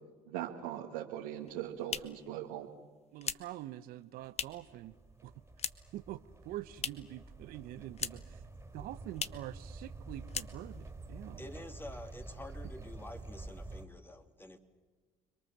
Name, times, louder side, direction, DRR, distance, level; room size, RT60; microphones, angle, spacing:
voice 1, 0.3-2.7, right 11 dB, 85° right, -2 dB, 2.2 m, -40 dB
sound 1, 1.3-4.8 5.1-6.0 6.3-7.2 7.5-8.4 8.7-8.8 9.1-9.5 9.9-10.0 10.3-10.9, left 7 dB, 40° left, 1.2 m, -41 dB
voice 2, 3.1-4.9 5.2-5.3 5.9-8.4 8.7-11.4, right 14 dB, 70° right, 12 dB, 1.0 m, -45 dB
sound 2, 4.2-13.9, right 2 dB, 15° right, 3.8 m, -48 dB
voice 3, 11.4-14.6, left 1 dB, 15° left, 6 dB, 3.2 m, -48 dB
30.0 x 22.5 x 7.5 m, 1.4 s
supercardioid pair, 70°, 16 cm